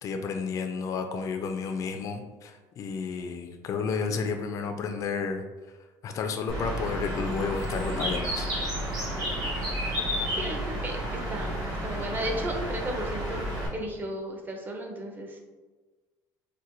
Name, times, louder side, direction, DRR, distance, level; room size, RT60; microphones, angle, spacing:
voice 1, 0.0-5.4 6.0-8.5, left 5 dB, 40° left, 5 dB, 0.3 m, -31 dB
Bird, 6.5-13.7, equal, 50° right, 1.4 m, -31 dB
voice 2, 10.3-11.5 11.8-15.4, right 1 dB, 20° right, 2 dB, 0.5 m, -34 dB
4.1 x 2.2 x 2.6 m, 1.3 s
cardioid pair, 115°, 9 cm